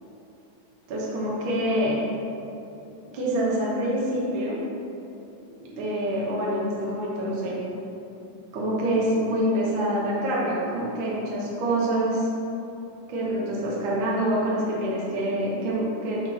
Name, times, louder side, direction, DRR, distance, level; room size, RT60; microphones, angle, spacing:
voice 1, 0.9-2.0 3.1-4.6 5.7-7.6 8.5-12.3 13.1-16.2, right 1 dB, 60° right, -5 dB, 1.3 m, -26 dB
5.9 x 4.4 x 4.4 m, 2.8 s
omnidirectional pair, 3.8 m